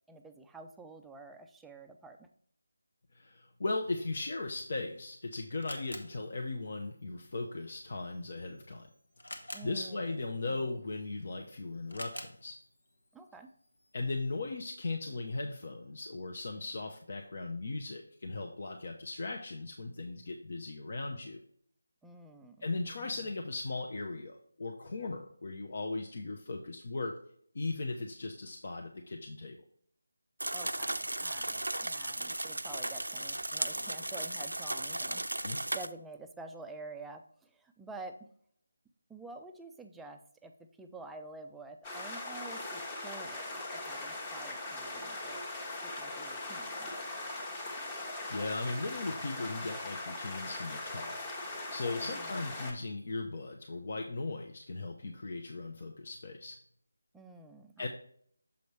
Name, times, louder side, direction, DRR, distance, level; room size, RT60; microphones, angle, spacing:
voice 1, 0.1-2.3 9.5-10.2 10.5-10.8 13.1-13.5 22.0-22.7 23.0-23.3 30.5-35.5 35.7-38.3 39.1-40.5 40.8-45.4 45.8-46.9 52.0-52.6 57.1-57.9, right 3 dB, 5° right, 4 dB, 0.4 m, -49 dB
voice 2, 3.1-8.9 9.4-12.6 13.9-21.4 22.6-27.2 27.5-29.6 35.4-35.6 48.3-51.3 51.7-56.6 57.8-57.9, left 3 dB, 50° left, 3 dB, 0.7 m, -38 dB
Camera, 4.7-14.5, left 1 dB, 80° left, 1.2 m, -52 dB
sound 1, 30.4-35.9, right 1 dB, 85° right, 0.4 m, -36 dB
sound 2, 41.8-52.7, left 2 dB, 20° left, 1.0 m, -40 dB
6.9 x 5.2 x 3.2 m, 0.62 s
figure-of-eight pair, 160°, 0 cm